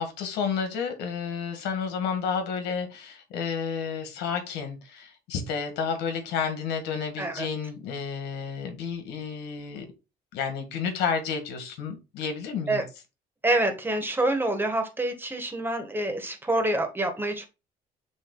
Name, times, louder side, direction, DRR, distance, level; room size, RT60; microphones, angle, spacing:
voice 1, 0.0-9.9 10.3-12.8, left 6 dB, 90° left, 6 dB, 1.7 m, -31 dB
voice 2, 13.4-17.5, right 1 dB, 10° right, 6 dB, 1.7 m, -27 dB
7.3 x 3.2 x 4.8 m, 0.28 s
cardioid pair, 110°, 17 cm